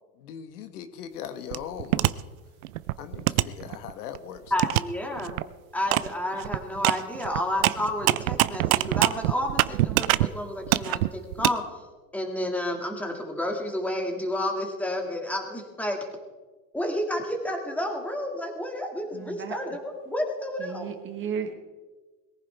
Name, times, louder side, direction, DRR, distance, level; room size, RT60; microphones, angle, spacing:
voice 1, 0.2-2.2 3.0-4.5, left 9 dB, 70° left, 9 dB, 1.4 m, -39 dB
sound 1, 1.5-2.1 2.6-4.2 4.6-4.8 5.2-5.4 5.9-6.1 6.3-10.3 10.6-11.5, right 17 dB, 65° right, 0.7 m, -24 dB
voice 2, 4.5-5.4 5.7-11.6 12.1-16.0 16.7-20.9, left 1 dB, 5° left, 2 dB, 2.0 m, -30 dB
voice 3, 19.1-19.5 20.6-21.5, right 7 dB, 25° right, 6 dB, 1.4 m, -34 dB
22.0 x 15.0 x 3.4 m, 1.3 s
supercardioid pair, 140°, 46 cm